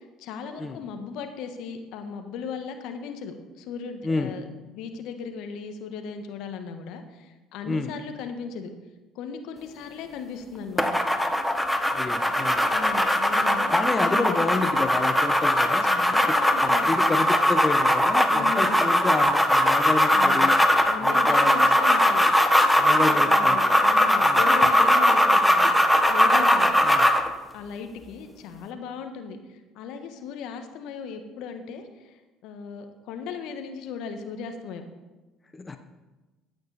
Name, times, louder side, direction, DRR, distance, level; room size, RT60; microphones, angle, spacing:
voice 1, 0.0-8.7 9.1-10.9 12.7-14.5 15.8-17.1 18.3-18.8 20.1-20.5 20.8-22.3 23.1-25.8 26.1-26.8 27.5-29.4 29.7-34.8, left 6 dB, 65° left, 6 dB, 1.5 m, -37 dB
voice 2, 4.0-4.3 7.7-7.9 11.9-12.6 13.7-15.9 16.6-20.5 21.0-21.8 22.8-23.8 24.2-24.4 26.8-27.1 35.5-35.8, left 3 dB, 25° left, 8 dB, 1.0 m, -29 dB
sound 1, 10.8-27.3, left 1 dB, 5° left, 1.3 m, -20 dB
14.5 x 9.1 x 4.3 m, 1.1 s
hypercardioid pair, 60°, 0 cm